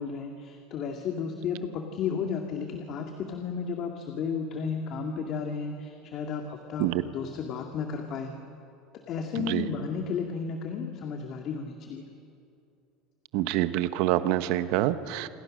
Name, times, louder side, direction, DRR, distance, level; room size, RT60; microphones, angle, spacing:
voice 1, 0.0-8.3 9.1-12.0, left 6 dB, 50° left, 3 dB, 2.1 m, -33 dB
voice 2, 13.3-15.3, right 14 dB, 70° right, 12 dB, 1.1 m, -26 dB
27.0 x 24.5 x 6.5 m, 2.6 s
supercardioid pair, 120°, 0 cm